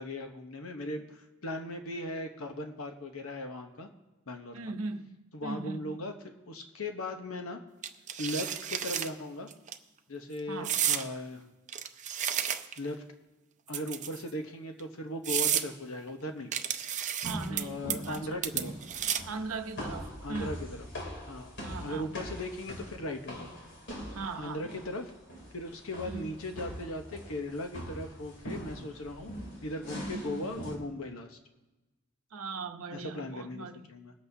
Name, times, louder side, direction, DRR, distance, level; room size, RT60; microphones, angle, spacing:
voice 1, 0.0-3.9 4.3-4.6 5.3-7.6 8.2-9.5 10.1-11.4 12.8-13.0 13.7-16.5 17.5-18.7 20.2-20.9 21.2-21.5 21.8-23.6 24.3-25.1 25.5-29.3 29.6-31.4 32.9-34.1, left 1 dB, 70° left, 5 dB, 1.0 m, -38 dB
voice 2, 4.5-5.2 5.4-6.0 10.5-10.8 17.2-18.4 19.3-20.6 21.6-22.2 24.1-24.6 26.1-26.4 30.1-30.5 32.3-33.8, right 4 dB, 80° right, 7 dB, 0.8 m, -39 dB
sound 1, 7.8-9.1 9.5-9.7 10.6-11.1 11.7-12.9 13.7-14.3 14.8-14.9 15.2-15.7 16.5-17.6 17.9-18.2 18.4-19.4, right 9 dB, 35° right, 0.6 m, -31 dB
sound 2, 17.2-30.7, equal, 55° left, 3.0 m, -42 dB
21.5 x 8.0 x 2.7 m, 1.1 s
head